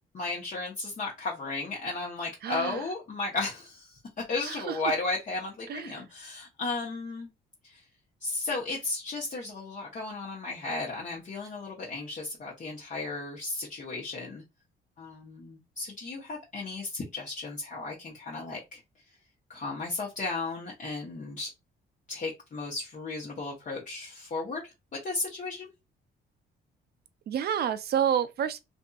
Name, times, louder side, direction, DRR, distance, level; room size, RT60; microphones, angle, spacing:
voice 1, 0.1-4.0 4.3-7.3 7.6-7.8 8.2-14.4 15.0-18.8 19.5-21.5 22.1-24.7 25.0-25.7, left 3 dB, 40° left, 0.9 m, -34 dB
voice 2, 2.4-2.8 4.7-4.8 5.7-6.0 27.3-28.6, right 9 dB, 55° right, 0.4 m, -28 dB
2.7 x 2.6 x 2.3 m
cardioid pair, 90°, 20 cm